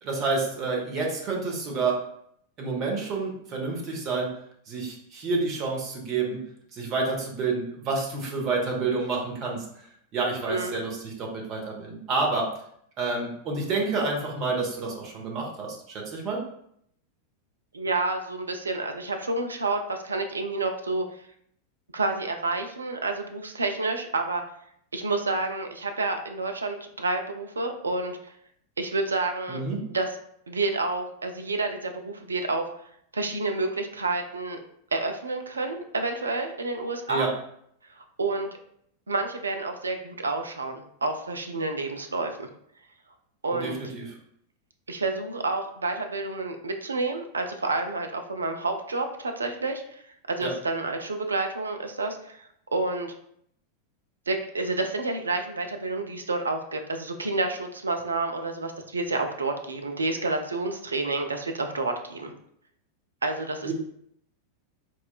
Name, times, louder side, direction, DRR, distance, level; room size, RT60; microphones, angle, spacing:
voice 1, 0.0-2.1 2.6-4.4 4.7-6.4 6.7-9.6 10.1-12.5 13.0-16.4 29.5-29.8 37.1-37.3 43.5-44.1 50.4-50.5 63.6-63.7, right 3 dB, 35° right, -1 dB, 0.8 m, -29 dB
voice 2, 10.5-10.8 17.7-21.0 21.9-24.4 24.9-28.2 28.8-29.6 29.9-30.2 30.5-32.6 33.1-34.6 34.9-37.3 38.0-38.5 39.1-42.5 43.4-43.8 44.9-50.0 50.3-53.1 54.3-62.3 63.2-63.7, right 3 dB, 75° right, 5 dB, 0.4 m, -29 dB
4.1 x 2.3 x 2.2 m, 0.70 s
figure-of-eight pair, 90°, 0 cm